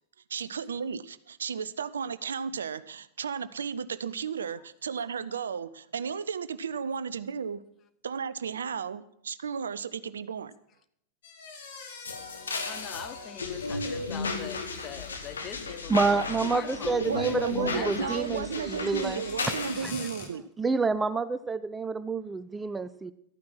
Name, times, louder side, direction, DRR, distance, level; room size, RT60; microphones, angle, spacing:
voice 1, 0.3-7.6 8.0-10.5 17.0-20.4, right 6 dB, 70° right, 16 dB, 0.5 m, -34 dB
sound 1, 11.2-16.1 18.0-20.3, left 5 dB, 55° left, 2.5 m, -47 dB
sound 2, 12.0-19.8, left 3 dB, 70° left, 1.5 m, -34 dB
voice 2, 12.3-17.4 17.7-18.6, left 8 dB, 30° left, 10 dB, 0.9 m, -43 dB
voice 3, 15.9-19.2 19.8-19.9 20.6-23.1, right 4 dB, 15° right, 14 dB, 0.5 m, -28 dB
13.0 x 9.4 x 6.0 m, 0.74 s
figure-of-eight pair, 90°, 0 cm